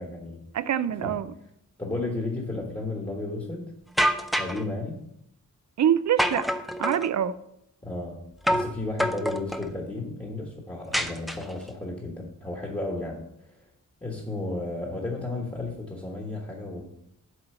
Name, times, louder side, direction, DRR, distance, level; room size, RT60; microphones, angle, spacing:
voice 1, 0.0-0.4 1.0-1.2 1.8-3.7 4.4-5.0 7.8-8.2 8.5-13.2 14.0-16.8, left 2 dB, 15° left, 1.3 m, -33 dB
voice 2, 0.5-1.3 5.8-6.5 6.8-7.4, right 9 dB, 65° right, 0.5 m, -25 dB
sound 1, 4.0-4.6 6.2-7.1 8.5-8.7 9.0-9.7 10.9-11.7, equal, ahead, 0.4 m, -26 dB
7.8 x 4.4 x 6.7 m
wide cardioid pair, 135°, 31 cm